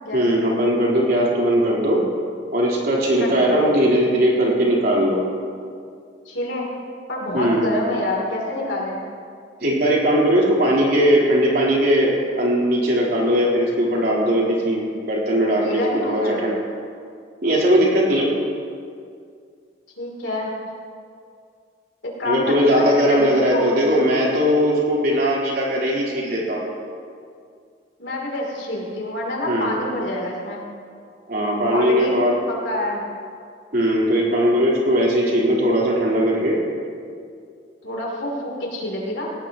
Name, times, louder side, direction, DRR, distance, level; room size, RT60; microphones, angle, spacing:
voice 1, 0.1-2.0 2.5-5.2 7.3-7.7 9.6-14.8 15.1-15.8 16.1-16.5 17.4-18.3 22.2-26.7 29.4-29.8 31.3-32.3 33.7-36.6, equal, 60° right, -5 dB, 4.0 m, -19 dB
voice 2, 3.2-3.8 6.3-6.7 7.1-9.1 15.6-16.5 20.0-20.5 22.0-23.8 28.0-30.6 31.7-32.1 32.5-33.0 37.8-39.3, left 1 dB, 75° left, -2 dB, 3.3 m, -27 dB
18.5 x 17.5 x 3.1 m, 2.3 s
head